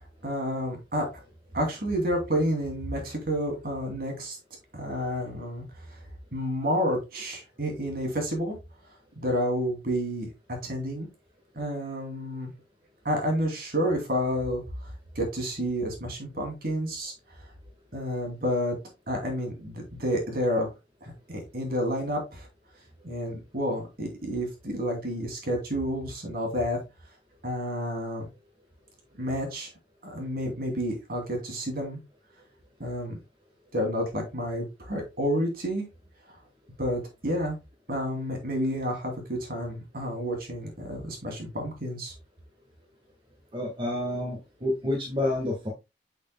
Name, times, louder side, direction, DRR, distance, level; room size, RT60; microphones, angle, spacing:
voice 1, 0.2-1.1 1.5-4.4 4.7-5.6 6.3-8.6 9.2-11.1 11.5-12.5 13.0-14.6 15.1-17.1 17.9-18.8 19.1-20.7 21.0-22.5 23.0-26.8 27.4-28.3 29.1-29.7 30.0-32.0 32.8-33.2 33.7-35.9 36.8-37.6 37.9-42.1, equal, 55° right, 2 dB, 2.7 m, -30 dB
voice 2, 43.5-45.7, left 1 dB, 30° right, 0 dB, 1.6 m, -29 dB
8.1 x 5.9 x 2.2 m, 0.24 s
head